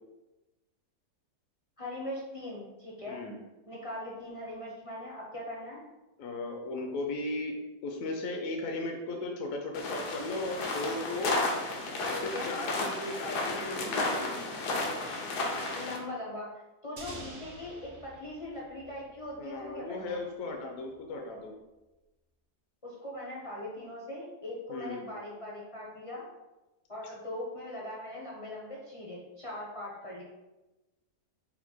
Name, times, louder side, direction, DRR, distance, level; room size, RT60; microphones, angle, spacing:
voice 1, 1.8-3.2 3.7-5.8 12.1-12.6 15.7-20.2 22.8-26.3 26.9-30.2, left 1 dB, 40° left, -5 dB, 0.5 m, -40 dB
voice 2, 3.1-3.4 6.2-7.6 7.8-11.4 12.1-14.5 17.1-17.3 19.4-21.5 24.7-25.0, left 2 dB, 70° left, 2 dB, 0.9 m, -36 dB
sound 1, 9.7-16.0, left 2 dB, 90° left, 1.3 m, -33 dB
sound 2, 17.0-19.7, right 2 dB, 50° right, 0.8 m, -48 dB
4.2 x 2.2 x 4.2 m, 1.1 s
omnidirectional pair, 1.7 m